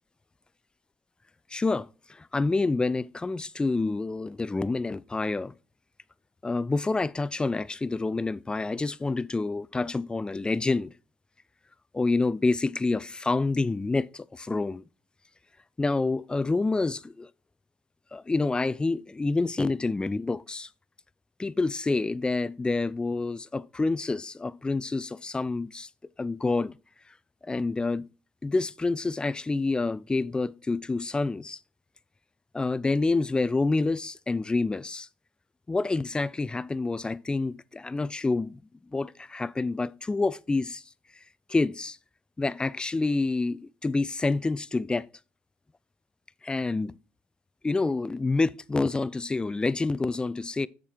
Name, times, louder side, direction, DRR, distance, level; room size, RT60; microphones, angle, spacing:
voice 1, 1.5-5.5 6.4-10.9 11.9-14.8 15.8-17.3 18.1-20.7 21.4-25.9 26.2-26.7 27.4-28.1 28.4-31.6 32.5-35.1 35.7-38.6 38.9-40.8 41.5-42.0 42.4-45.1 46.4-46.9 47.6-50.7, left 3 dB, 20° left, 0.3 m, -28 dB
7.1 x 5.1 x 4.4 m
supercardioid pair, 75°, 5 cm